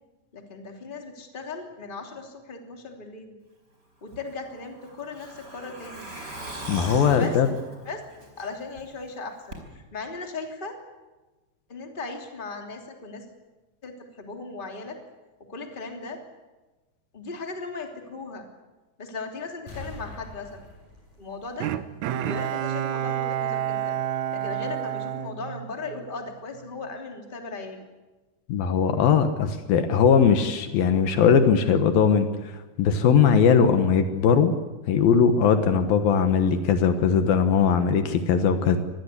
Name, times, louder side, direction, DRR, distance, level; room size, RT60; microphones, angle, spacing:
voice 1, 0.3-3.4 4.0-6.1 7.1-7.4 7.8-8.0 8.4-10.8 11.7-13.2 13.8-15.0 15.5-16.2 17.1-18.5 19.0-20.6 21.2-21.7 22.1-24.0 24.3-27.8, left 3 dB, 15° left, 3 dB, 2.6 m, -37 dB
Truck, 4.1-8.8 9.1-9.2 9.5-9.6, right 1 dB, 20° right, 5.0 m, -39 dB
voice 2, 6.7-7.5 28.5-32.3 32.8-34.5 34.9-38.8, left 6 dB, 70° left, 8 dB, 3.0 m, -20 dB
sound 1, 19.7-22.3 22.6-22.7, left 1 dB, 45° left, 9.0 m, -44 dB
Bowed string instrument, 21.6-26.1 26.6-26.7, right 11 dB, 75° right, 1.7 m, -29 dB
25.5 x 20.0 x 8.3 m, 1.1 s
omnidirectional pair, 4.4 m